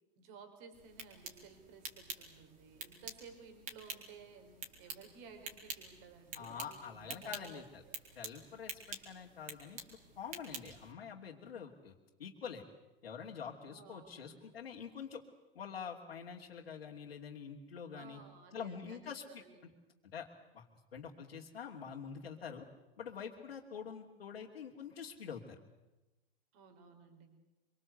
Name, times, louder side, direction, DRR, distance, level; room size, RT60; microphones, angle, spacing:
voice 1, 0.2-8.0 13.6-14.3 17.9-19.6 26.5-27.3, right 5 dB, 45° right, 6 dB, 5.1 m, -56 dB
sound 1, 0.7-10.9, right 4 dB, 25° right, 4.7 m, -49 dB
voice 2, 6.3-7.8 8.1-11.9 12.2-12.6 13.0-15.2 15.5-18.2 18.5-19.7 20.0-20.3 20.5-20.7 20.9-22.6 23.0-25.6, left 7 dB, 70° left, -2 dB, 2.8 m, -46 dB
25.5 x 24.5 x 8.2 m, 1.0 s
figure-of-eight pair, 105°, 30 cm